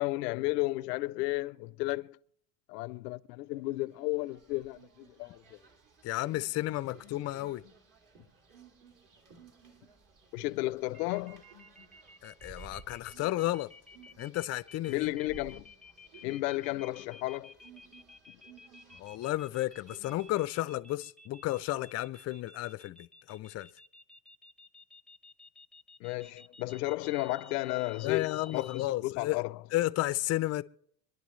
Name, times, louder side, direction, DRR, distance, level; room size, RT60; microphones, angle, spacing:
voice 1, 0.0-2.2 2.7-5.6 10.3-11.4 14.9-15.7 16.2-17.6 26.0-29.6, left 20 dB, 90° left, 0.6 m, -33 dB
sound 1, 3.9-20.4, right 3 dB, 40° right, 2.9 m, -57 dB
voice 2, 6.0-7.6 12.2-13.7 14.2-15.1 19.0-23.7 28.0-29.4 29.7-30.6, left 16 dB, 35° left, 0.4 m, -32 dB
sound 2, 10.9-28.8, left 2 dB, ahead, 0.7 m, -54 dB
26.0 x 10.5 x 3.1 m
supercardioid pair, 100°, 47 cm